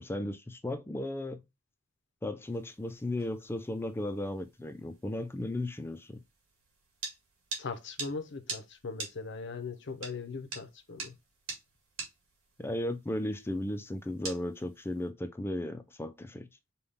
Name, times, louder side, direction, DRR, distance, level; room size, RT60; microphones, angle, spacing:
voice 1, 0.0-1.4 2.2-6.2 12.6-16.5, left 1 dB, 10° left, 0.4 m, -35 dB
sound 1, 2.5-15.1, right 3 dB, 70° right, 1.8 m, -46 dB
voice 2, 7.6-11.1, left 4 dB, 60° left, 0.6 m, -40 dB
5.4 x 2.3 x 3.3 m
head